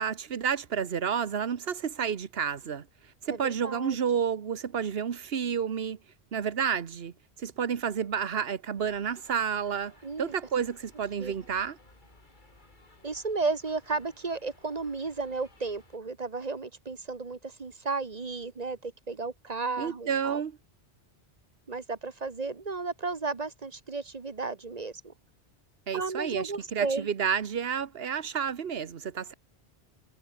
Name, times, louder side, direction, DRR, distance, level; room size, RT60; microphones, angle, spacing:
voice 1, 0.0-2.8 3.2-6.0 6.3-7.1 7.4-9.9 10.2-11.8 19.8-20.6 25.9-29.3, right 7 dB, 65° right, 1.3 m, -30 dB
voice 2, 3.3-4.0 10.0-10.3 11.2-11.3 13.0-20.4 21.7-25.1 25.9-27.1, right 3 dB, 40° right, 1.2 m, -33 dB
sound 1, 8.8-16.0, left 2 dB, 45° left, 3.6 m, -58 dB
omnidirectional pair, 1.1 m